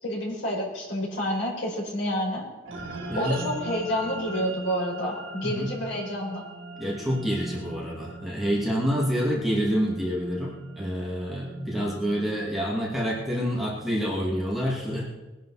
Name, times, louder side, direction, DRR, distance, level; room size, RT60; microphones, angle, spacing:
voice 1, 0.0-2.5 3.1-6.4, equal, 70° left, -3 dB, 5.8 m, -29 dB
sound 1, 2.6-13.3, right 3 dB, 70° right, 3.2 m, -41 dB
voice 2, 5.4-5.7 6.8-15.0, equal, ahead, -5 dB, 2.6 m, -27 dB
21.0 x 11.0 x 4.4 m, 1.2 s
head